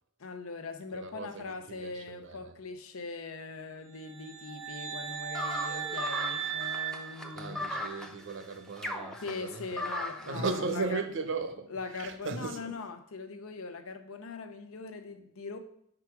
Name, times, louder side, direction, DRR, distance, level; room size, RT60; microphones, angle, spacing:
voice 1, 0.2-7.8 9.2-10.6 10.9-11.0 11.7-15.6, left 4 dB, 80° left, 0.8 m, -41 dB
voice 2, 0.9-2.6 7.3-12.8, right 3 dB, 60° right, 0.8 m, -37 dB
sound 1, 3.9-8.0, right 10 dB, 80° right, 1.1 m, -37 dB
sound 2, 5.3-10.4, left 1 dB, 5° left, 0.5 m, -37 dB
4.9 x 4.9 x 5.8 m
head